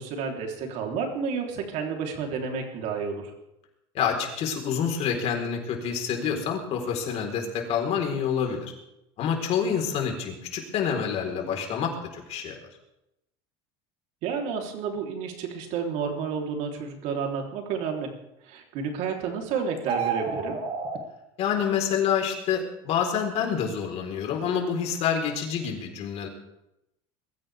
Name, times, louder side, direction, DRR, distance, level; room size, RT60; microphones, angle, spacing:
voice 1, 0.0-3.3 14.2-18.1 18.4-20.6, right 6 dB, 65° right, 2 dB, 3.6 m, -31 dB
voice 2, 3.9-8.7 9.2-12.6 21.4-26.3, left 7 dB, 55° left, 1 dB, 4.3 m, -27 dB
sound 1, 19.8-21.0, right 5 dB, 45° right, 3.2 m, -29 dB
22.0 x 15.0 x 3.6 m, 0.87 s
supercardioid pair, 120°, 13 cm